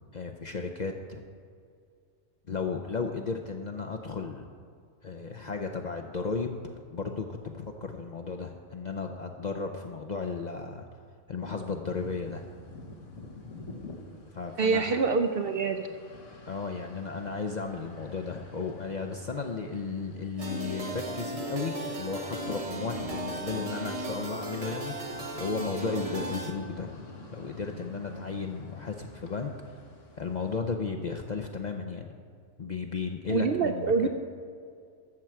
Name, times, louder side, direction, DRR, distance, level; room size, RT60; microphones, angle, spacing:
voice 1, 0.1-1.2 2.5-4.5 5.0-10.9 11.3-12.5 14.3-14.9 16.5-26.9 27.3-29.7 30.2-32.1 32.6-34.1, left 4 dB, 50° left, 3 dB, 0.5 m, -34 dB
sound 1, 11.9-30.6, left 2 dB, 70° left, 1.5 m, -49 dB
voice 2, 14.6-15.9 33.3-34.1, right 4 dB, 60° right, 7 dB, 0.6 m, -26 dB
sound 2, 20.4-26.5, right 1 dB, 30° right, 1.1 m, -36 dB
13.5 x 4.6 x 7.4 m, 2.3 s
omnidirectional pair, 1.4 m